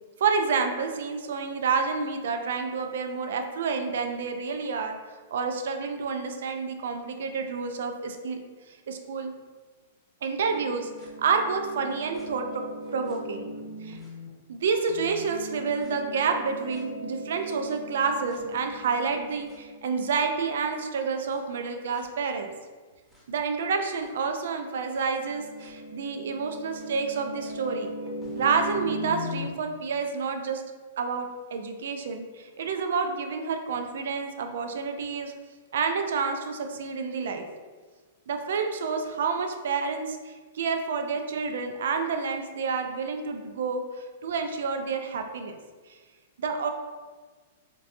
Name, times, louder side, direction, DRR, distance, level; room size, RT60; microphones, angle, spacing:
voice 1, 0.2-4.9 5.3-8.4 8.7-9.3 10.2-10.9 11.2-12.6 12.9-13.5 13.8-14.0 14.5-22.5 23.3-27.9 28.3-30.6 31.0-35.3 35.7-37.4 38.3-45.6 46.4-46.7, right 5 dB, 75° right, 5 dB, 0.4 m, -29 dB
sound 1, 10.4-14.3 14.6-20.7 21.3-21.4 21.9-22.0 23.1-23.2 24.0-24.1 24.9-29.5, equal, ahead, 0.8 m, -39 dB
3.9 x 2.2 x 2.6 m, 1.4 s
hypercardioid pair, 140°, 0 cm